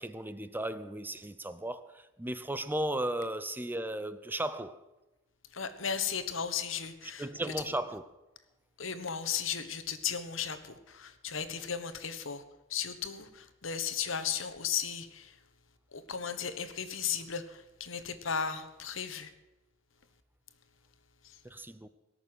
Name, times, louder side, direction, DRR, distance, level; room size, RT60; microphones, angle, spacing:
voice 1, 0.0-4.8 7.2-8.0 21.4-21.9, right 1 dB, 10° right, 0.5 m, -35 dB
voice 2, 5.5-7.3 8.8-12.4 12.7-15.4 15.9-19.3 21.2-21.4, left 7 dB, 75° left, 1.3 m, -35 dB
18.0 x 6.9 x 9.6 m
head